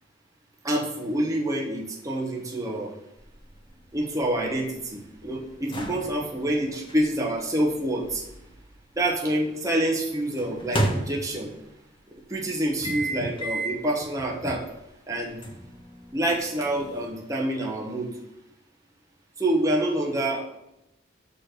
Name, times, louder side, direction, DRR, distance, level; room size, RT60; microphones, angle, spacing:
voice 1, 0.6-3.0 3.9-8.3 9.0-11.5 12.1-14.7 15.1-15.4 16.1-18.1 19.4-20.4, right 1 dB, 20° right, -1 dB, 1.0 m, -27 dB
sound 1, 3.2-9.3 10.4-11.7 12.8-13.9 14.3-14.5 15.4-17.1, right 1 dB, 25° left, 1.4 m, -33 dB
6.5 x 4.2 x 6.5 m, 0.85 s
head